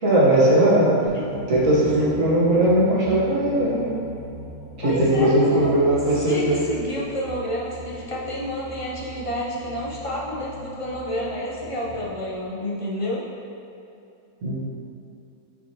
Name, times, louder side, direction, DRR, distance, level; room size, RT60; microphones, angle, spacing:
voice 1, 0.0-1.1 1.5-3.9 4.8-6.6 14.4-14.6, right 1 dB, 60° right, -6 dB, 1.7 m, -19 dB
sound 1, 1.1-12.3, right 1 dB, 80° right, 2.2 m, -40 dB
voice 2, 4.8-6.0 6.2-13.2, equal, 35° left, -5 dB, 0.5 m, -30 dB
9.6 x 3.3 x 2.9 m, 2.7 s
omnidirectional pair, 1.6 m